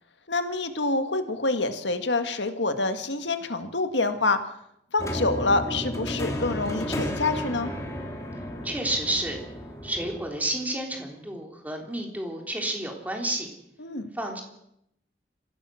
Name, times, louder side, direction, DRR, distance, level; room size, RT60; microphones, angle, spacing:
voice 1, 0.3-4.5 4.9-7.7 13.8-14.1, left 3 dB, 90° left, 8 dB, 1.8 m, -26 dB
sound 1, 5.0-10.2, equal, 15° left, 2.6 m, -33 dB
voice 2, 8.6-9.4 9.8-13.5 14.1-14.4, right 1 dB, 10° right, 2 dB, 3.5 m, -30 dB
25.5 x 16.0 x 6.4 m, 0.79 s
head